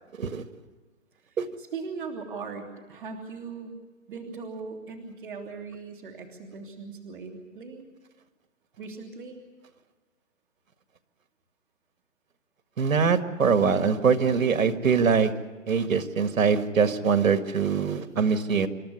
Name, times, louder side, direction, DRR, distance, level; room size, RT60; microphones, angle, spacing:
voice 1, 1.2-3.7 4.1-7.9 8.8-9.4, right 4 dB, 5° right, -12 dB, 0.8 m, -39 dB
voice 2, 12.8-15.3 15.7-18.7, right 6 dB, 75° right, 8 dB, 2.0 m, -23 dB
27.5 x 13.0 x 9.6 m, 1.4 s
hypercardioid pair, 180°, 40 cm